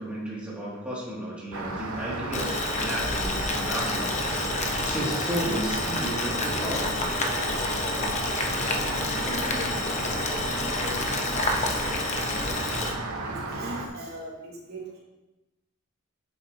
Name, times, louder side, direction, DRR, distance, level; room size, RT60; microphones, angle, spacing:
voice 1, 0.0-4.5 4.8-6.9, right 1 dB, 5° right, -7 dB, 2.3 m, -33 dB
Rain, 1.5-13.9, right 2 dB, 75° right, 1.0 m, -34 dB
Boiling, 2.3-12.9, left 2 dB, 30° left, 0.8 m, -29 dB
voice 2, 7.8-8.8 9.2-12.1 12.4-12.8 13.2-15.0, right 1 dB, 50° right, -8 dB, 2.3 m, -42 dB
8.3 x 7.1 x 2.9 m, 1.0 s
head